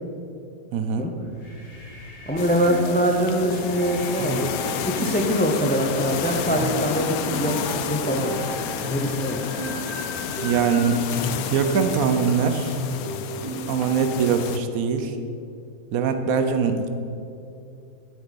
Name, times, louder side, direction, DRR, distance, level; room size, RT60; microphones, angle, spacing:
voice 1, 0.7-1.1 10.3-11.0 11.5-12.8 13.7-15.2 15.9-16.9, right 6 dB, 75° right, 8 dB, 1.1 m, -22 dB
sound 1, 1.2-10.9, left 1 dB, 60° left, 1.9 m, -42 dB
voice 2, 2.3-4.5 4.9-8.4 8.9-9.4, equal, 15° left, 2 dB, 0.3 m, -23 dB
sound 2, 2.3-14.6, equal, 20° right, 1.4 m, -34 dB
sound 3, 2.4-14.6, left 8 dB, 85° left, 1.0 m, -31 dB
11.5 x 7.3 x 4.1 m, 2.6 s
omnidirectional pair, 1.5 m